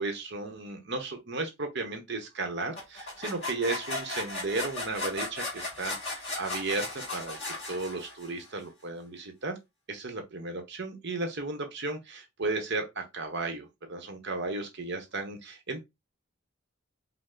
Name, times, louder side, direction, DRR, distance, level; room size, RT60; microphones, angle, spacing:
voice 1, 0.0-9.6 9.9-15.8, right 3 dB, 55° right, 1.0 m, -34 dB
sound 1, 2.8-8.4, left 2 dB, 30° left, 2.9 m, -36 dB
5.4 x 2.2 x 3.8 m
head